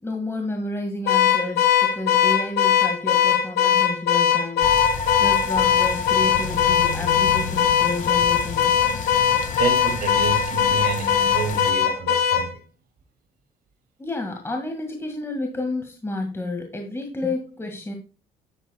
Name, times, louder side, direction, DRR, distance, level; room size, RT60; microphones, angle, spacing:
voice 1, 0.0-4.8 5.2-8.8 14.0-17.9, left 2 dB, 15° left, 1.9 m, -30 dB
Car / Alarm, 1.1-12.5, left 9 dB, 75° left, 1.9 m, -20 dB
sound 1, 4.6-11.7, left 5 dB, 55° left, 1.8 m, -29 dB
voice 2, 9.6-12.5, right 5 dB, 65° right, 2.6 m, -29 dB
10.0 x 7.9 x 2.3 m
supercardioid pair, 85°, 16 cm